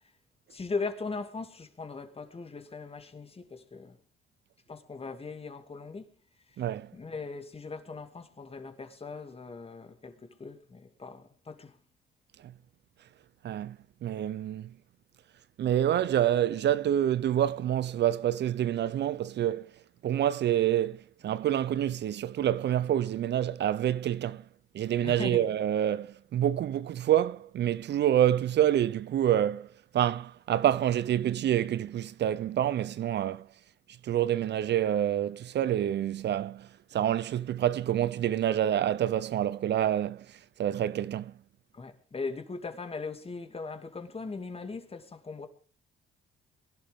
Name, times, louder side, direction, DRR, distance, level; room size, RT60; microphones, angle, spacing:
voice 1, 0.5-4.0 4.7-6.1 6.6-6.7 6.9-11.8 25.0-25.5 41.7-45.5, left 4 dB, 30° left, 2.5 m, -39 dB
voice 2, 6.6-6.9 13.4-13.8 14.0-14.7 15.6-19.7 20.0-24.4 24.7-29.7 29.9-33.5 34.0-40.2 40.6-41.3, right 11 dB, 60° right, 0.6 m, -27 dB
22.5 x 11.5 x 3.6 m
cardioid pair, 90°, 20 cm